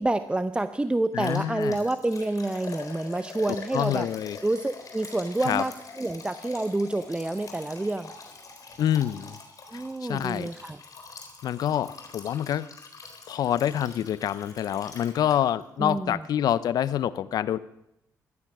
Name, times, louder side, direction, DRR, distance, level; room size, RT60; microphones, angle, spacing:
voice 1, 0.0-4.1 4.4-8.1 9.7-10.8 15.8-16.2, right 2 dB, 15° right, 12 dB, 0.7 m, -28 dB
voice 2, 1.1-1.8 3.5-4.4 5.4-5.6 8.8-9.4 10.0-10.5 11.4-12.6 13.3-17.6, left 10 dB, 75° left, 17 dB, 0.7 m, -27 dB
Liquid, 1.2-15.6 15.9-16.0 16.5-16.6, left 4 dB, 55° left, 4.0 m, -45 dB
15.0 x 12.0 x 6.1 m, 0.80 s
cardioid pair, 65°, 7 cm